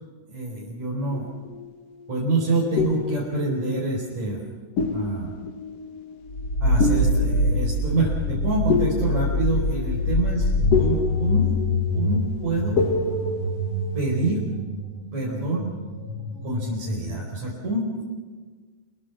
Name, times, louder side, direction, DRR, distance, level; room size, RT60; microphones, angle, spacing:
voice 1, 0.3-1.3 2.1-4.4 4.9-5.3 6.6-10.4 10.8-11.5 11.9-12.8 13.9-14.4 15.1-15.7 16.4-18.0, right 2 dB, 60° right, -5 dB, 6.1 m, -26 dB
sound 1, 1.1-2.2 2.8-4.5 4.8-14.3, left 4 dB, 55° left, 2.3 m, -29 dB
sound 2, 6.3-17.3, left 1 dB, 40° left, 5.3 m, -25 dB
28.0 x 23.0 x 6.1 m, 1.4 s
omnidirectional pair, 3.7 m